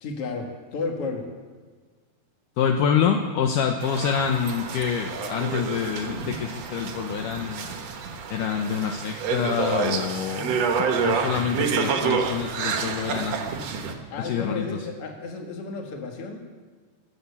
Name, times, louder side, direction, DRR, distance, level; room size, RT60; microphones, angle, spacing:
voice 1, 0.0-1.3 14.1-16.4, left 3 dB, 45° left, 2 dB, 2.2 m, -32 dB
voice 2, 2.6-7.8 8.3-13.5 14.2-14.7, left 7 dB, 75° left, 3 dB, 2.0 m, -26 dB
sound 1, 3.8-13.9, right 6 dB, 65° right, 1.6 m, -28 dB
23.5 x 7.8 x 7.1 m, 1.5 s
omnidirectional pair, 4.8 m